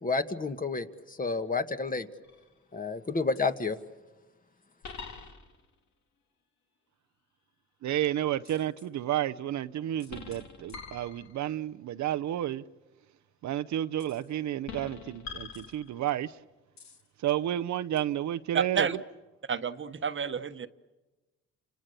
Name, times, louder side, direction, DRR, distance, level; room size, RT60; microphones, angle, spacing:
voice 1, 0.0-2.1 2.7-3.8, left 3 dB, 25° left, 1.8 m, -30 dB
sound 1, 2.2-2.7 3.4-3.5 4.8-5.7 8.4-8.9 10.0-11.6 14.0-14.3 14.7-16.2 16.8-17.1 18.0-18.1, left 5 dB, 65° left, 3.5 m, -45 dB
voice 2, 7.8-12.6 13.4-16.4 17.2-18.9, right 12 dB, 70° right, 0.8 m, -31 dB
voice 3, 18.5-19.0 19.5-20.7, right 6 dB, 40° right, 1.3 m, -30 dB
30.0 x 27.5 x 6.9 m
cardioid pair, 90°, 30 cm